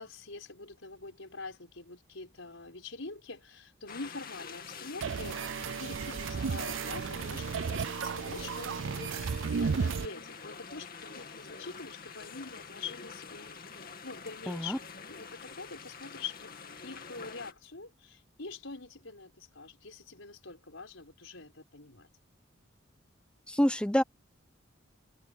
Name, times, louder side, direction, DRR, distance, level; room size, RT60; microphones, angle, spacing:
voice 1, 0.0-5.4 5.8-16.5 16.8-22.1, left 4 dB, 70° left, 5.3 m, -45 dB
sound 1, 3.9-17.5, left 5 dB, 45° left, 2.4 m, -47 dB
sound 2, 5.0-10.1, right 6 dB, 65° right, 0.4 m, -33 dB
voice 2, 14.5-14.8 23.5-24.0, equal, 5° left, 0.6 m, -27 dB
head